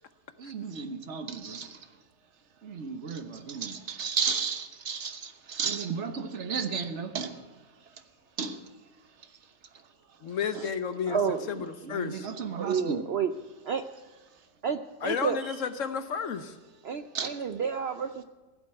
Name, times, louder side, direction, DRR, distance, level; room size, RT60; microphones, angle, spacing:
voice 1, 0.4-1.8 2.6-7.3 8.4-8.6 11.8-13.1 15.4-15.5 17.1-17.3, right 6 dB, 45° right, 1.3 m, -33 dB
voice 2, 10.2-12.3 15.0-16.6, left 6 dB, 55° left, 1.1 m, -32 dB
voice 3, 11.1-11.5 12.6-13.3 13.6-13.8 14.6-15.4 16.8-18.2, right 6 dB, 80° right, 0.5 m, -30 dB
16.0 x 8.2 x 9.7 m
omnidirectional pair, 1.8 m